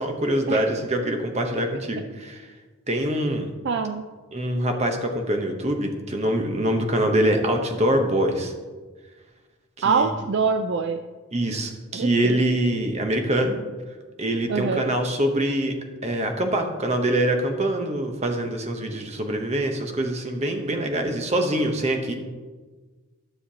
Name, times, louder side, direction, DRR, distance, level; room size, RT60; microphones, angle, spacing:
voice 1, 0.0-2.5 2.9-3.5 4.3-8.5 9.8-10.1 11.3-13.6 14.2-15.7 16.0-22.1, right 1 dB, 30° right, 4 dB, 0.9 m, -24 dB
voice 2, 3.6-4.1 9.8-11.0 11.9-12.4 14.5-14.9, right 5 dB, 55° right, 7 dB, 0.4 m, -24 dB
13.0 x 6.5 x 2.8 m, 1.4 s
head